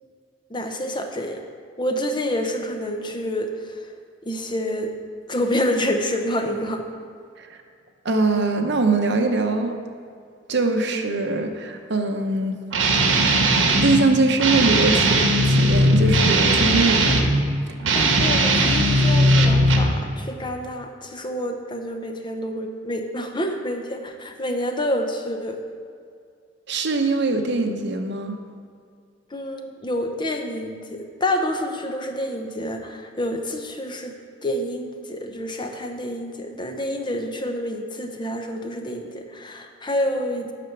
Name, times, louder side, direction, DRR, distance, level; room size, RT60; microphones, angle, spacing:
voice 1, 0.5-1.4 1.8-3.8 4.2-4.9 5.3-6.8 17.9-25.6 29.3-34.1 34.4-40.5, left 1 dB, 25° left, 4 dB, 0.7 m, -28 dB
voice 2, 8.0-9.7 10.5-13.1 13.8-17.1 26.7-28.4, right 3 dB, 65° right, 5 dB, 0.9 m, -22 dB
Guitar, 12.7-14.0 14.4-17.3 17.8-20.0, right 1 dB, 80° right, 1.1 m, -18 dB
9.4 x 6.0 x 5.9 m, 2.2 s
head